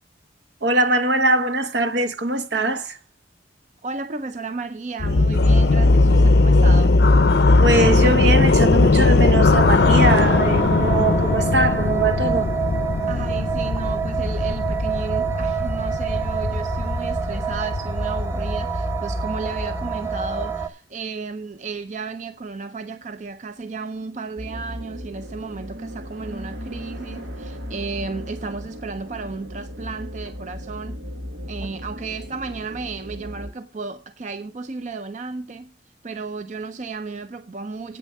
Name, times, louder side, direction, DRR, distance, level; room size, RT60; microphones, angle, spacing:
voice 1, 0.6-3.0 7.6-12.5, right 2 dB, 65° right, 1.0 m, -22 dB
voice 2, 3.8-7.0 13.1-31.0 31.5-35.7 36.0-38.0, right 4 dB, 40° right, 0.5 m, -33 dB
sound 1, 5.0-19.9, left 3 dB, 60° left, 0.5 m, -19 dB
sound 2, 9.6-20.7, right 5 dB, 15° right, 0.8 m, -27 dB
sound 3, 24.4-33.5, equal, 90° right, 1.8 m, -36 dB
8.4 x 6.8 x 6.5 m
head